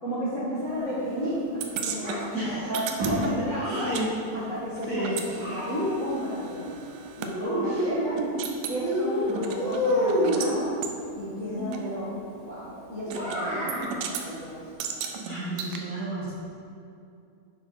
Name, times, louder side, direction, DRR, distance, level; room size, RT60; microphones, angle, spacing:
voice 1, 0.0-2.2 2.4-2.8 3.1-3.9 4.3-6.8 7.2-8.2 8.7-10.7 11.1-14.6, equal, 85° left, -11 dB, 0.6 m, -33 dB
sound 1, 1.6-4.1 4.3-7.3 7.8-7.9 8.2-8.8 9.3-10.5 10.8-11.0 11.7-11.8 13.1-13.4 13.7-14.3 14.8-15.8, right 6 dB, 85° right, 2.0 m, -35 dB
Child speech kid speaking, 2.0-4.0 4.9-6.1 7.3-8.4 8.8-10.5 13.1-13.9, equal, 60° right, 3.6 m, -29 dB
voice 2, 2.3-2.7 3.0-3.5 3.8-4.1 4.9-5.1 7.4-7.9 11.6-11.9 15.2-16.3, right 1 dB, 40° right, -10 dB, 1.5 m, -31 dB
10.5 x 5.8 x 3.9 m, 2.5 s
omnidirectional pair, 4.2 m